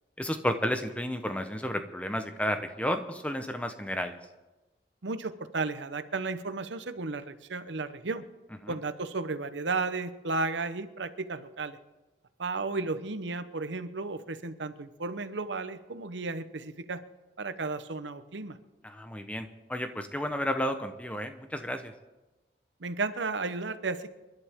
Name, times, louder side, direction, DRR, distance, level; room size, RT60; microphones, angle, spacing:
voice 1, 0.2-4.2 8.6-8.8 18.8-21.9, equal, 5° left, 7 dB, 0.9 m, -32 dB
voice 2, 5.0-8.2 8.7-11.8 12.4-17.0 17.4-18.6 22.8-24.1, right 3 dB, 85° right, 12 dB, 0.9 m, -34 dB
28.0 x 11.5 x 3.7 m, 1.1 s
head